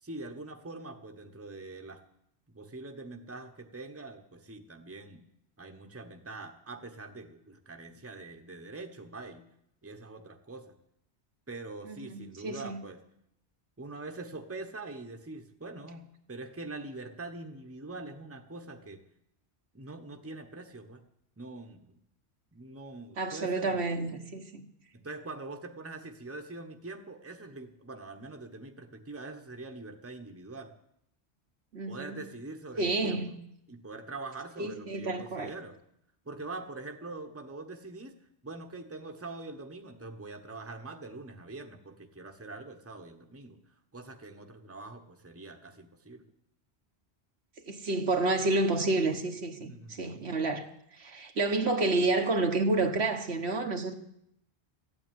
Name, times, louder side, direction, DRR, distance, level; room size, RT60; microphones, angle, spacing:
voice 1, 0.0-2.0 2.5-5.2 5.6-9.5 9.8-10.7 11.5-13.0 13.8-19.0 19.7-21.0 21.4-22.0 22.5-23.8 24.9-30.7 31.9-33.4 33.7-35.8 36.2-38.2 38.4-43.6 43.9-46.2 49.6-50.3, right 3 dB, 15° right, 1.0 m, -44 dB
voice 2, 11.9-12.8 23.2-24.7 31.7-32.2 32.8-33.3 34.6-35.5 47.7-53.9, right 2 dB, 75° right, 1.4 m, -30 dB
13.5 x 8.7 x 9.3 m
omnidirectional pair, 1.1 m